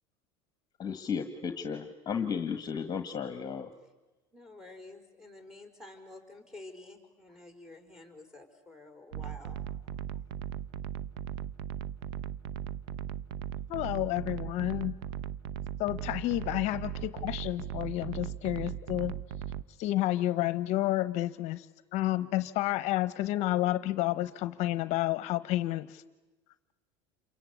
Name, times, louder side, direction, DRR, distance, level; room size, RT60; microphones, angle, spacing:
voice 1, 0.8-3.7, left 6 dB, 30° left, 9 dB, 1.5 m, -34 dB
voice 2, 4.3-9.6, left 2 dB, 5° right, 5 dB, 4.8 m, -50 dB
sound 1, 9.1-19.6, right 10 dB, 80° right, 0.8 m, -38 dB
voice 3, 13.7-15.0 15.8-19.1 19.8-21.7 21.9-26.0, left 15 dB, 60° left, 14 dB, 0.8 m, -30 dB
28.0 x 23.5 x 8.4 m, 1.2 s
supercardioid pair, 115°, 13 cm